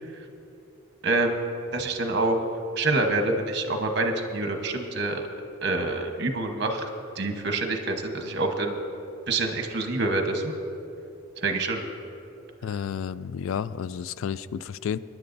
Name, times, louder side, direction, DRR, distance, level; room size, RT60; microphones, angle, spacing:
voice 1, 1.0-2.4 2.8-5.2 5.6-6.9 7.2-8.8 9.3-10.5 11.4-11.8, right 2 dB, 55° right, 4 dB, 1.1 m, -26 dB
voice 2, 12.6-15.0, left 7 dB, 75° left, 17 dB, 0.3 m, -31 dB
23.5 x 10.5 x 2.6 m, 2.7 s
head